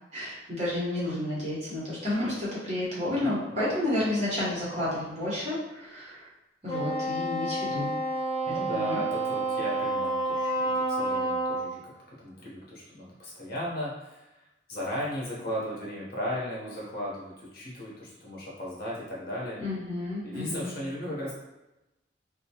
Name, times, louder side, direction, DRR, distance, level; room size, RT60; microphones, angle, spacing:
voice 1, 0.1-6.3 6.6-7.9 8.7-9.0 19.6-20.7, left 1 dB, 40° right, -8 dB, 1.1 m, -31 dB
voice 2, 3.2-3.7 8.4-11.8 12.1-14.2 14.7-19.6 20.2-21.3, left 1 dB, 55° left, -5 dB, 0.8 m, -36 dB
Wind instrument woodwind instrument, 6.7-11.7, right 2 dB, 35° left, 0.4 m, -29 dB
2.3 x 2.2 x 2.8 m, 0.97 s
head